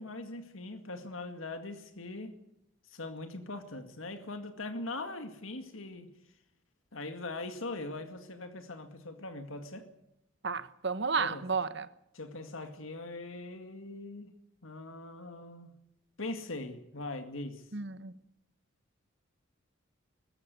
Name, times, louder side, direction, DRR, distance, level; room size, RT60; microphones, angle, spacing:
voice 1, 0.0-2.3 2.9-6.1 6.9-9.9 11.2-11.4 12.1-14.3 14.6-15.7 16.2-17.6, left 2 dB, 80° left, 2.1 m, -41 dB
voice 2, 10.4-11.9 17.7-18.1, right 5 dB, 60° right, 1.2 m, -32 dB
20.5 x 15.0 x 9.4 m
head